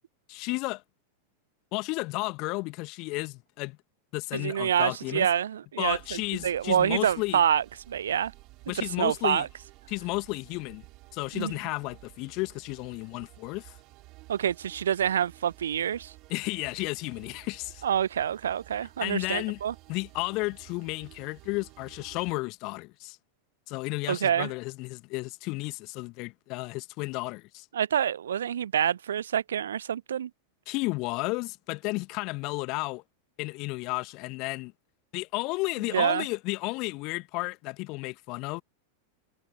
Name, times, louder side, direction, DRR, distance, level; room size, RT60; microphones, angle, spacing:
voice 1, 0.3-0.8 1.7-3.8 4.1-5.3 5.8-7.4 8.7-9.5 9.9-10.8 11.1-13.8 16.3-17.8 19.0-19.6 19.9-23.2 23.7-27.7 30.7-33.0 33.4-34.7 35.1-38.6, left 25 dB, 40° left, 1.4 m, -33 dB
voice 2, 4.3-8.3 8.8-9.5 11.3-11.5 14.3-16.1 17.8-19.7 24.1-24.5 27.7-30.3 35.9-36.2, right 9 dB, 65° right, 0.7 m, -27 dB
sound 1, 5.8-22.3, right 21 dB, 40° right, 5.0 m, -53 dB
figure-of-eight pair, 90°, 0 cm